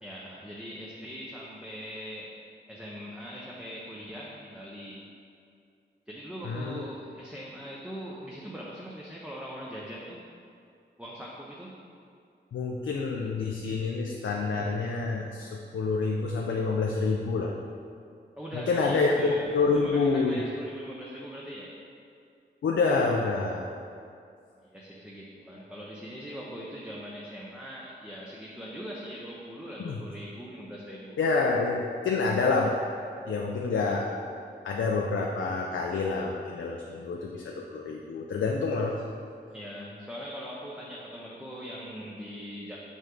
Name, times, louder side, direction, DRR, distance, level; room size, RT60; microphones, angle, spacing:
voice 1, 0.0-2.4 2.7-5.1 6.1-10.2 11.0-11.7 18.4-19.5 19.7-21.7 24.6-31.2 39.5-42.8, equal, 5° right, -5 dB, 0.6 m, -41 dB
voice 2, 6.4-6.8 12.5-17.5 18.5-20.4 22.6-23.7 29.8-30.0 31.2-32.7 33.3-34.1 34.6-38.9, left 4 dB, 90° left, 0 dB, 0.5 m, -27 dB
6.2 x 5.5 x 3.8 m, 2.4 s
wide cardioid pair, 130°, 19 cm